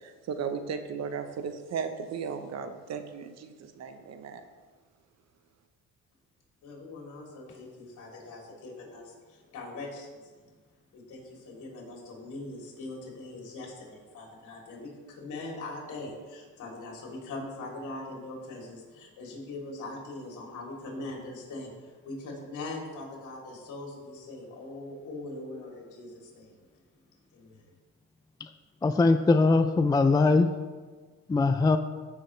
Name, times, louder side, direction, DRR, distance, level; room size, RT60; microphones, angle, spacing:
voice 1, 0.0-4.4, right 6 dB, 60° right, 8 dB, 1.0 m, -36 dB
voice 2, 6.6-10.5 10.9-26.8 27.3-27.7, left 2 dB, 70° left, -2 dB, 3.2 m, -41 dB
voice 3, 28.8-30.5 31.3-31.8, left 3 dB, 15° left, 8 dB, 0.4 m, -21 dB
14.5 x 6.2 x 3.3 m, 1.4 s
cardioid pair, 105°, 30 cm